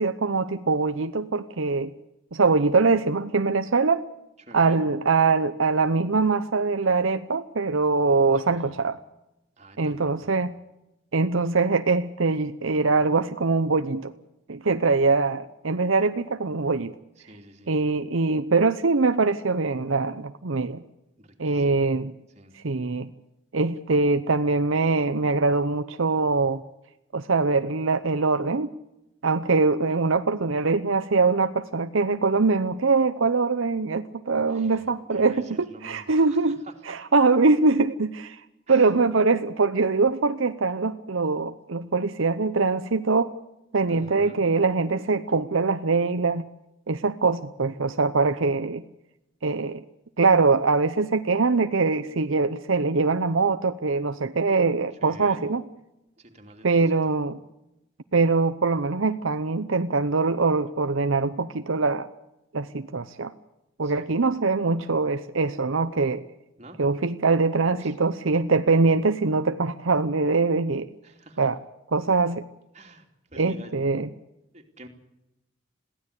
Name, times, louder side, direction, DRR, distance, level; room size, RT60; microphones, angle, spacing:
voice 1, 0.0-1.9 2.3-4.0 4.5-9.0 9.8-10.5 11.1-14.1 14.5-16.9 17.7-20.8 21.4-22.1 22.6-23.1 23.5-26.6 27.1-28.7 29.2-36.6 36.9-38.4 38.7-43.3 43.7-46.4 46.9-48.8 49.4-49.8 50.2-55.6 56.6-57.4 58.1-62.1 62.5-63.3 63.8-66.2 66.8-70.9 71.4-71.6 71.9-72.4 73.4-74.1, right 3 dB, 75° right, 10 dB, 0.8 m, -23 dB
voice 2, 4.4-4.8 8.3-8.8 9.6-10.3 17.2-17.8 21.2-21.9 22.3-22.6 34.5-36.9 38.7-39.0 43.9-44.4 54.9-55.5 56.2-57.1 63.8-64.1 66.6-66.8 67.8-68.0 71.0-71.5 72.7-73.8 74.5-74.9, right 1 dB, 35° right, 3 dB, 2.9 m, -48 dB
22.0 x 16.0 x 8.3 m, 0.89 s
head